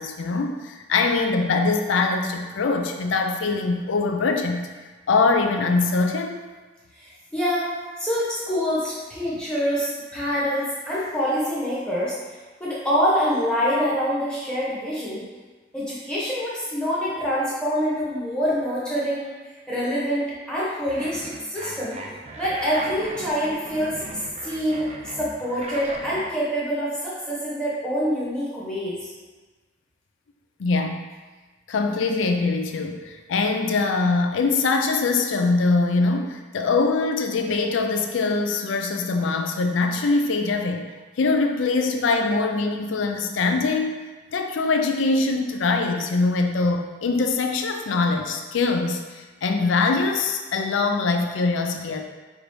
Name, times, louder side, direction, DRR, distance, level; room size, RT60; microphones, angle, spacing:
voice 1, 0.0-4.7 5.1-6.4 30.6-31.0 31.7-40.9 41.2-44.0 44.3-52.0, left 3 dB, 80° left, 4 dB, 0.4 m, -23 dB
voice 2, 7.0-7.7 8.0-12.2 12.6-15.2 15.7-19.3 19.7-22.0 22.4-23.9 24.4-24.9 25.2-29.1, equal, 5° left, -8 dB, 1.0 m, -25 dB
sound 1, 20.9-26.3, right 2 dB, 35° right, 0.3 m, -38 dB
4.8 x 2.6 x 3.1 m, 1.3 s
head